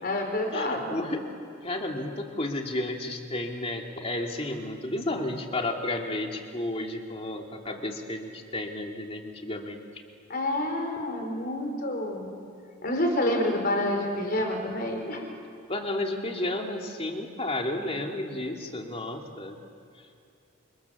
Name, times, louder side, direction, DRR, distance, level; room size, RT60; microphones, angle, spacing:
voice 1, 0.0-1.0 10.3-12.3 12.8-15.2, left 1 dB, 45° left, 3 dB, 4.6 m, -28 dB
voice 2, 0.5-1.2 1.6-9.8 15.7-19.6, left 1 dB, 30° left, 2 dB, 2.4 m, -32 dB
28.5 x 27.5 x 7.2 m, 2.4 s
head